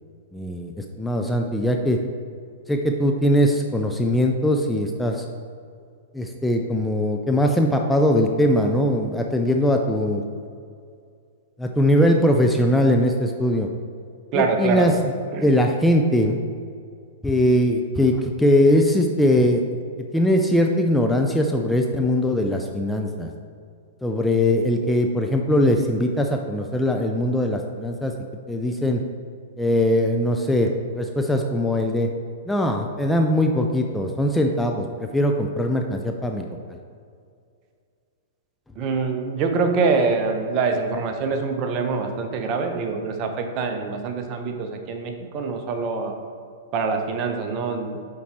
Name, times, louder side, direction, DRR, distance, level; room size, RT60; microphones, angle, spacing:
voice 1, 0.3-2.0 2.7-5.2 6.1-10.2 11.6-13.7 14.3-15.1 15.4-16.4 17.2-19.6 20.1-23.3 24.0-28.1 28.5-29.0 29.6-32.1 32.5-36.8, left 1 dB, 5° left, 2 dB, 0.4 m, -21 dB
voice 2, 14.3-14.9 15.3-15.5 38.8-46.2 46.7-48.0, right 4 dB, 40° right, 5 dB, 0.8 m, -24 dB
7.0 x 4.5 x 4.3 m, 2.3 s
figure-of-eight pair, 110°, 0 cm